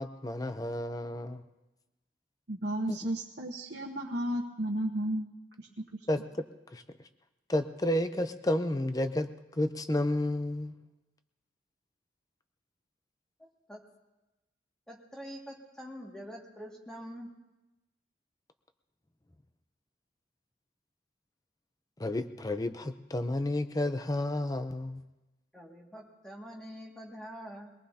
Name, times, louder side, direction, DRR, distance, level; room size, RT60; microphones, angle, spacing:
voice 1, 0.0-1.4 2.9-3.1 6.1-6.2 6.7-6.8 7.5-10.7 22.0-25.0, left 1 dB, 20° left, 9 dB, 0.6 m, -31 dB
voice 2, 2.5-5.3 5.6-6.1, right 1 dB, 65° right, -1 dB, 1.1 m, -33 dB
voice 3, 13.4-13.8 14.9-17.3 25.5-27.7, equal, 5° left, -2 dB, 2.1 m, -45 dB
23.0 x 18.5 x 2.8 m, 1.0 s
head